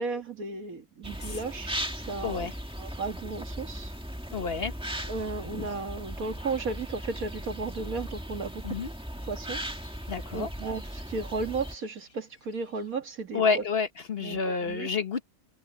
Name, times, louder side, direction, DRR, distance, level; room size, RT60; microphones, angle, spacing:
voice 1, 0.0-2.5 2.8-4.0 5.1-8.8 9.2-9.6 10.3-13.6 14.2-14.9, right 4 dB, 85° right, 2.3 m, -34 dB
sound 1, 1.0-11.8, equal, 5° right, 1.8 m, -38 dB
sound 2, 1.1-13.0, left 4 dB, 85° left, 3.1 m, -55 dB
voice 2, 4.3-4.7 8.6-8.9 10.1-10.5 13.3-15.2, left 5 dB, 45° left, 1.3 m, -29 dB
omnidirectional pair, 1.5 m